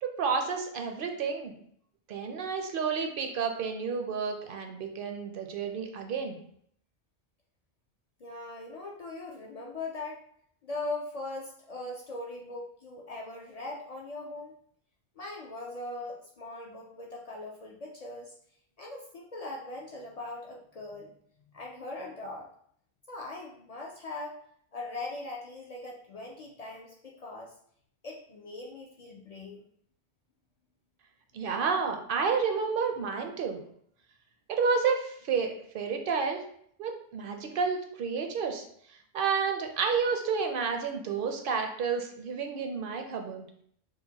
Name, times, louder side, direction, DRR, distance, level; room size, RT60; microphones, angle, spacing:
voice 1, 0.0-1.5 2.1-6.4 31.3-33.6 34.5-36.4 36.8-38.6 39.1-43.5, right 5 dB, 60° right, 4 dB, 0.7 m, -30 dB
voice 2, 8.2-10.2 10.6-14.5 15.2-18.3 18.8-21.1 21.5-22.5 23.1-24.4 24.7-27.5 28.0-29.7, left 2 dB, 60° left, -1 dB, 0.4 m, -40 dB
4.5 x 2.1 x 2.8 m, 0.65 s
omnidirectional pair, 1.1 m